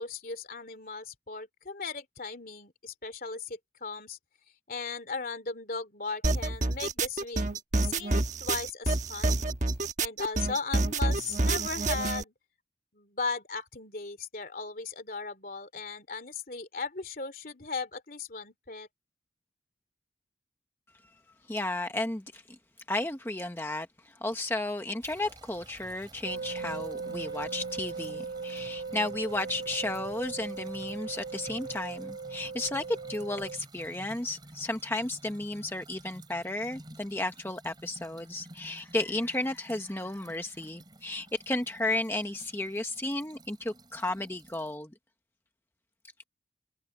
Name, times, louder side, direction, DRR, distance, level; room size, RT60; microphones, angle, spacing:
voice 1, 0.0-4.2 4.7-9.5 10.0-12.3 12.9-18.9, left 4 dB, 50° left, 3.1 m, -37 dB
sound 1, 6.2-12.2, right 2 dB, 45° right, 1.2 m, -28 dB
voice 2, 21.5-22.6 22.9-44.9, left 2 dB, 15° left, 0.9 m, -33 dB
sound 2, 25.0-44.8, right 1 dB, 25° right, 6.1 m, -53 dB
sound 3, 26.2-33.6, right 4 dB, 65° right, 1.6 m, -38 dB
head